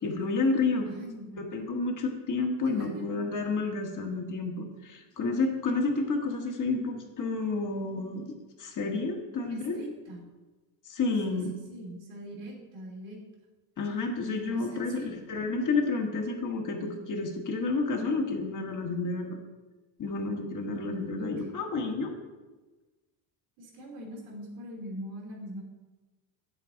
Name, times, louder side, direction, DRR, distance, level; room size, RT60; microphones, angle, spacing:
voice 1, 0.0-0.9 1.4-8.2 8.6-9.8 10.8-11.5 13.8-19.4 20.0-22.1, left 3 dB, 35° left, 2 dB, 1.5 m, -30 dB
voice 2, 0.9-1.5 2.6-3.2 9.5-10.2 11.3-11.4 11.7-13.2 14.5-15.1 21.1-21.5 23.6-25.6, equal, 80° right, -3 dB, 3.1 m, -42 dB
8.1 x 7.6 x 3.9 m, 1.2 s
cardioid pair, 120°, 50 cm